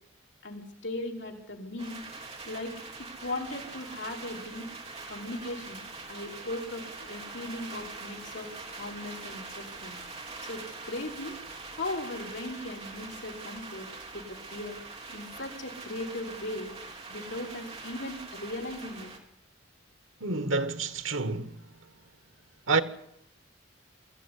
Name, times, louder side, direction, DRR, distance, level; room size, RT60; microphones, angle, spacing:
voice 1, 0.4-2.0 2.4-2.8 3.2-4.7 5.1-10.0 10.4-11.4 11.8-13.9 14.1-14.8 15.1-16.7 17.1-19.1, left 2 dB, 65° left, 3.7 m, -38 dB
sound 1, 1.8-19.2, right 3 dB, 30° right, 3.5 m, -43 dB
voice 2, 20.2-21.6 22.7-22.8, right 3 dB, 90° right, 1.6 m, -28 dB
22.5 x 14.5 x 9.9 m
head